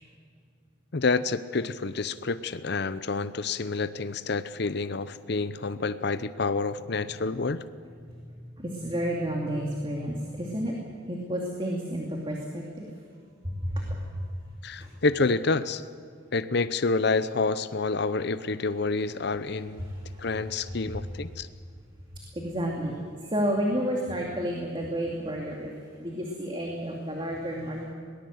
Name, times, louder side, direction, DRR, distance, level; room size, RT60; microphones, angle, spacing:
voice 1, 0.9-7.6 14.6-15.8 16.3-19.8 20.2-21.5, left 3 dB, 60° left, 13 dB, 0.7 m, -28 dB
voice 2, 8.1-10.7 11.1-12.9 13.4-14.3 14.7-14.9 19.8-20.3 20.7-21.0 22.1-22.9 23.2-27.8, equal, 25° right, -1 dB, 2.4 m, -31 dB
22.0 x 18.5 x 7.9 m, 2.2 s
head